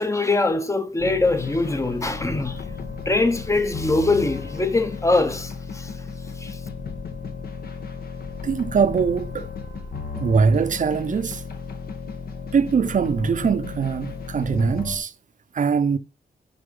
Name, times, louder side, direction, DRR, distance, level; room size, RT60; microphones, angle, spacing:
voice 1, 0.0-2.6 3.1-5.9 6.4-6.6, left 2 dB, 15° left, 0.8 m, -22 dB
sound 1, 1.0-15.0, left 5 dB, 65° left, 1.2 m, -34 dB
voice 2, 8.4-9.5 10.2-11.4 12.5-15.1 15.5-16.0, right 6 dB, 50° right, 0.7 m, -22 dB
6.7 x 5.6 x 5.3 m
wide cardioid pair, 110°, 17 cm